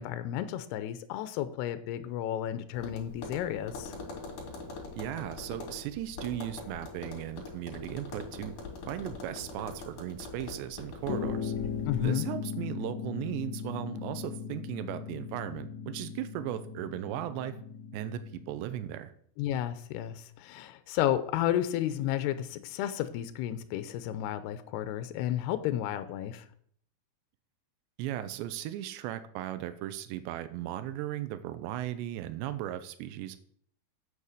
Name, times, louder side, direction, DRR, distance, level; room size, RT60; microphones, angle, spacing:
voice 1, 0.0-3.9 11.9-12.3 19.4-26.5, left 12 dB, 80° left, 11 dB, 2.6 m, -32 dB
Tap, 2.7-12.0, left 3 dB, 50° left, 3.7 m, -43 dB
voice 2, 5.0-8.5 8.9-11.5 12.0-17.6 17.9-19.1 28.0-33.4, right 12 dB, 85° right, 11 dB, 2.9 m, -37 dB
sound 1, 11.0-18.8, left 7 dB, 65° left, 3.3 m, -38 dB
8.4 x 7.4 x 6.5 m, 0.62 s
omnidirectional pair, 5.0 m